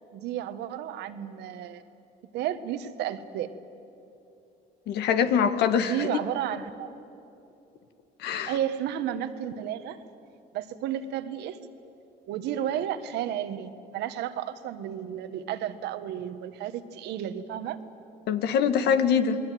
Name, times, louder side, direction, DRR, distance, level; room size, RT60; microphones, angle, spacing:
voice 1, 0.1-1.8 2.3-3.5 5.8-6.9 8.5-10.0 10.5-11.6 12.3-17.8, right 10 dB, 85° right, 11 dB, 1.5 m, -32 dB
voice 2, 4.9-6.1 8.2-8.5 18.3-19.4, left 7 dB, 75° left, 10 dB, 1.7 m, -24 dB
28.5 x 21.0 x 9.3 m, 2.8 s
cardioid pair, 110°, 17 cm